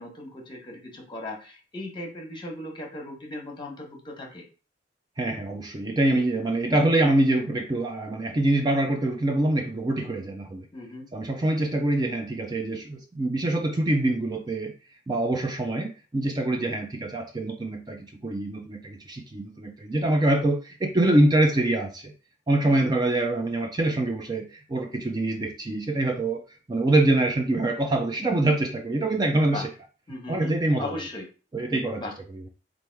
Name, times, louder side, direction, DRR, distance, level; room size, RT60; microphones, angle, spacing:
voice 1, 0.0-4.4 10.7-11.1 16.5-16.8 22.7-22.9 29.5-29.7 30.1-31.2 32.0-32.1, left 1 dB, 25° left, 1.1 m, -37 dB
voice 2, 5.2-10.7 11.1-14.7 15.1-22.1 22.5-26.4 26.7-29.7 30.3-30.9 31.5-32.0, right 2 dB, 25° right, 0.5 m, -25 dB
3.4 x 2.6 x 4.5 m
head